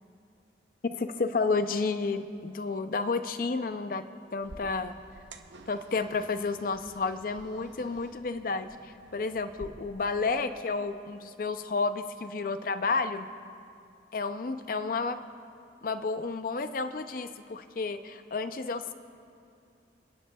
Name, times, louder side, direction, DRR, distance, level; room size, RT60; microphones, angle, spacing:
voice 1, 0.9-4.1 4.3-4.9 5.7-8.7 9.1-13.3 14.1-15.2 15.8-18.9, left 4 dB, 50° left, 10 dB, 0.5 m, -31 dB
Turning on the lights, 4.4-9.7, right 2 dB, 85° right, 0.7 m, -51 dB
29.5 x 10.0 x 2.3 m, 2.5 s
head